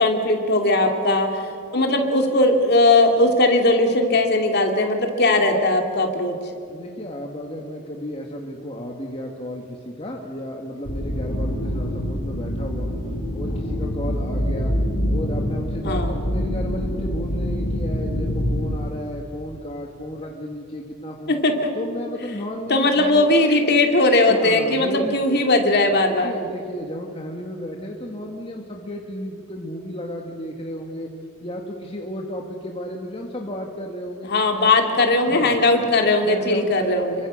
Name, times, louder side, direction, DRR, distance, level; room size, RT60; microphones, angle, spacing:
voice 1, 0.0-1.4 1.7-6.3 15.8-16.2 21.3-21.7 22.7-26.3 34.2-37.2, left 2 dB, 45° left, 3 dB, 2.6 m, -19 dB
voice 2, 6.7-13.0 13.3-14.7 15.1-21.3 21.7-23.3 24.3-25.1 25.7-25.9 26.2-31.1 31.4-34.3 34.6-35.6 36.2-37.3, equal, 25° left, 0 dB, 1.6 m, -33 dB
sound 1, 10.8-18.8, equal, 80° left, 5.6 m, -25 dB
27.0 x 23.5 x 6.4 m, 2.5 s
head